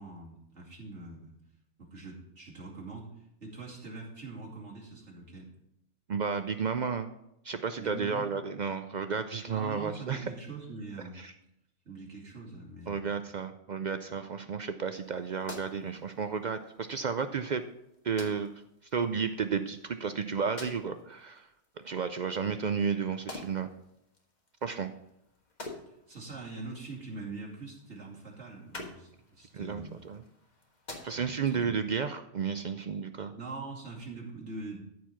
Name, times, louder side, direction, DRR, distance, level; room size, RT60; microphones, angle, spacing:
voice 1, 0.0-1.4 1.8-5.5 7.8-8.3 9.4-11.2 11.8-13.1 26.1-30.0 31.1-31.8 33.3-34.8, right 3 dB, 75° right, -3 dB, 2.9 m, -43 dB
voice 2, 6.1-7.1 7.4-10.3 11.2-11.3 12.9-17.6 18.0-18.5 18.9-21.5 21.8-23.7 24.6-24.9 29.5-30.2 31.0-33.3, right 6 dB, 55° right, 9 dB, 0.5 m, -32 dB
sound 1, 14.9-31.6, left 2 dB, 40° left, 1.6 m, -50 dB
13.5 x 4.7 x 5.8 m, 0.80 s
omnidirectional pair, 1.2 m